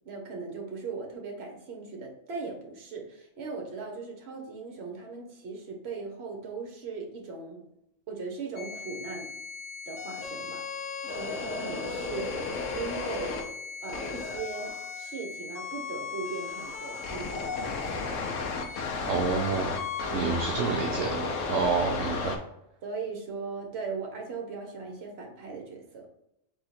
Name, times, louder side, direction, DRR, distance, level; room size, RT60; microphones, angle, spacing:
voice 1, 0.0-7.6 8.1-9.3 9.9-10.7 11.1-13.4 13.8-18.0 20.1-20.4 21.5-21.8 22.8-26.1, right 4 dB, 55° right, 1 dB, 1.2 m, -38 dB
sound 1, 8.6-22.4, left 4 dB, 70° left, 1.1 m, -34 dB
voice 2, 19.1-19.8 20.1-22.3, right 4 dB, 75° right, 2 dB, 0.9 m, -29 dB
3.7 x 3.2 x 4.1 m, 0.85 s
omnidirectional pair, 1.4 m